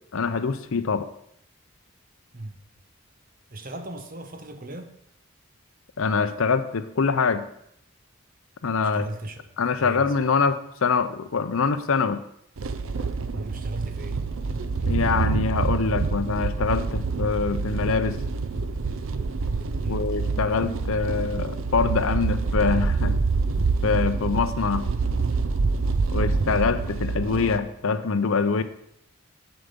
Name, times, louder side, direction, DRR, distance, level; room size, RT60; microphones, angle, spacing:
voice 1, 0.1-1.1 6.0-7.4 8.6-9.1 9.6-12.2 14.9-18.2 19.9-23.2 23.8-24.8 26.1-28.6, left 5 dB, 70° left, 12 dB, 0.6 m, -24 dB
voice 2, 3.5-4.9 8.8-9.5 9.8-10.1 13.3-14.3 19.8-20.2, right 1 dB, 40° right, 7 dB, 0.9 m, -37 dB
sound 1, 12.6-27.6, right 4 dB, 70° right, 0.6 m, -26 dB
8.0 x 7.7 x 5.2 m, 0.74 s
head